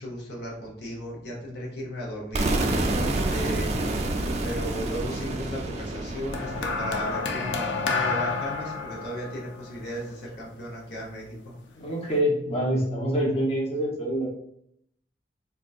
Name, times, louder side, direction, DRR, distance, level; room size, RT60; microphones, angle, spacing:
voice 1, 0.0-2.8 3.0-3.7 4.4-11.5, equal, 65° left, -3 dB, 0.8 m, -36 dB
sound 1, 2.3-8.2, right 2 dB, 40° right, 0.4 m, -29 dB
sound 2, 6.3-10.8 11.7-11.9, left 4 dB, 90° left, 0.4 m, -30 dB
voice 2, 11.8-14.3, equal, 35° left, -3 dB, 0.8 m, -26 dB
3.6 x 2.7 x 2.4 m, 0.71 s
head